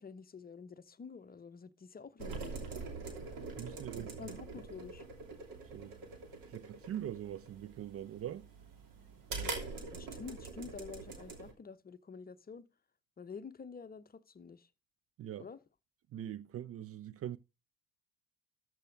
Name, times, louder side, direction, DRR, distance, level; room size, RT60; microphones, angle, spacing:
voice 1, 0.0-2.6 3.9-5.0 9.9-12.6 13.2-14.7 15.4-15.6, left 5 dB, 20° left, 0.8 m, -49 dB
sound 1, 2.2-11.5, right 4 dB, 55° right, 3.0 m, -44 dB
voice 2, 3.6-4.4 5.7-6.0 6.5-8.5 15.2-15.5 16.1-17.4, right 11 dB, 35° right, 0.5 m, -42 dB
13.5 x 6.3 x 4.7 m
figure-of-eight pair, 55°, 40 cm